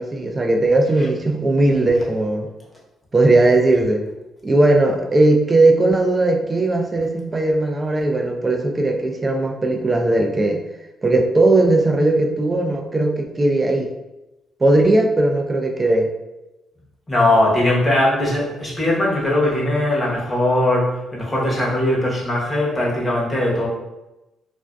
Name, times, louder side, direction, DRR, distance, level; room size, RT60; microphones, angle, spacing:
voice 1, 0.0-2.5 3.1-4.0 4.4-10.6 11.0-13.9 14.6-16.1, right 2 dB, 25° right, 3 dB, 0.4 m, -18 dB
voice 2, 17.1-23.7, left 1 dB, 25° left, -4 dB, 0.8 m, -19 dB
2.5 x 2.2 x 2.2 m, 0.97 s
cardioid pair, 90°, 0 cm